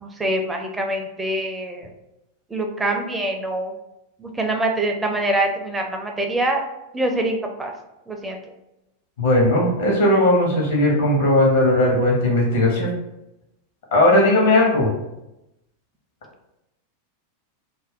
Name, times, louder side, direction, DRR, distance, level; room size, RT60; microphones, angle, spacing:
voice 1, 0.0-1.9 2.5-3.7 4.2-6.6 6.9-7.7 8.1-8.4, right 1 dB, 10° right, 2 dB, 0.5 m, -24 dB
voice 2, 9.2-12.9 13.9-14.9, left 1 dB, 65° left, -2 dB, 0.9 m, -17 dB
2.6 x 2.2 x 3.5 m, 0.89 s
figure-of-eight pair, 90°, 0 cm